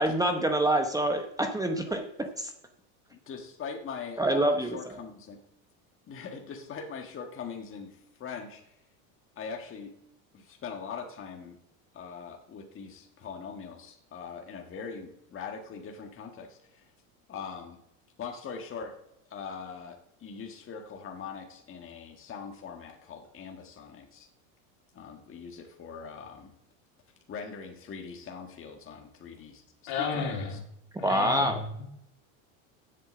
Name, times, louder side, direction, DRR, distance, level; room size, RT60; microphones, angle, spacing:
voice 1, 0.0-2.5 4.2-5.0 31.0-31.6, right 1 dB, 10° right, 4 dB, 0.9 m, -26 dB
voice 2, 3.1-5.4 6.1-8.8 9.3-9.9 10.3-11.6 11.9-16.9 17.3-17.8 18.2-18.9 19.3-24.3 24.9-26.5 27.3-30.6 31.2-31.5, left 6 dB, 30° left, 2 dB, 1.6 m, -42 dB
voice 3, 29.9-30.6 31.0-31.9, left 5 dB, 60° left, 1 dB, 3.0 m, -33 dB
8.0 x 7.6 x 6.9 m, 0.78 s
supercardioid pair, 110°, 42 cm